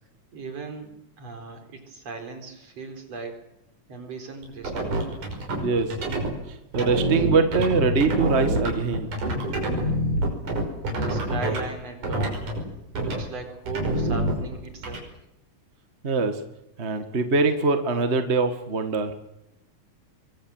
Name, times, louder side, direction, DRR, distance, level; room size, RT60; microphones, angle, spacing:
voice 1, 0.3-3.4 3.9-5.0 9.7-10.0 10.9-12.5 12.9-15.1, right 4 dB, 50° right, 5 dB, 5.2 m, -38 dB
sound 1, 4.4-6.3 6.7-11.7 12.0-12.6 12.9-13.2 13.7-15.0, right 1 dB, 70° right, 7.1 m, -26 dB
voice 2, 5.6-6.0 6.5-9.1 16.0-16.4 16.8-19.1, right 4 dB, 30° right, 7 dB, 1.4 m, -23 dB
25.0 x 23.0 x 7.9 m, 0.86 s
omnidirectional pair, 3.7 m